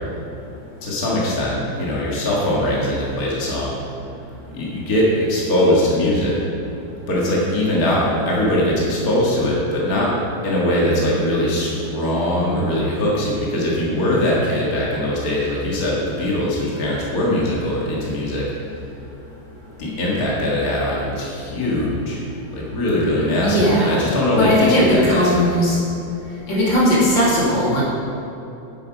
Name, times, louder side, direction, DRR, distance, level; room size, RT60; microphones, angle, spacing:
voice 1, 0.8-3.7 4.4-6.4 7.1-10.1 10.4-18.5 19.8-22.2 22.5-25.4, left 1 dB, 50° left, -5 dB, 2.3 m, -21 dB
voice 2, 23.4-24.0 24.4-25.8 26.5-27.8, equal, 85° left, -6 dB, 3.3 m, -17 dB
11.0 x 7.8 x 5.2 m, 2.9 s
omnidirectional pair, 2.0 m